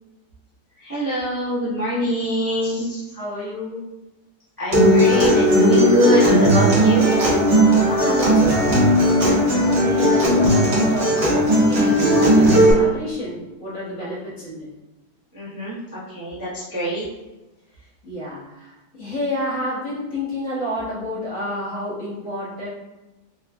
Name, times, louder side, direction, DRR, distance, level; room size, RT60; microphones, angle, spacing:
voice 1, 0.8-3.0 4.6-7.1 15.3-17.0, equal, 15° right, -12 dB, 0.9 m, -23 dB
voice 2, 3.1-3.8 7.7-14.7 18.0-22.7, left 1 dB, 55° left, -9 dB, 1.4 m, -30 dB
Acoustic guitar, 4.7-12.7, equal, 45° right, 1.0 m, -16 dB
4.3 x 2.3 x 2.3 m, 1.0 s
omnidirectional pair, 1.7 m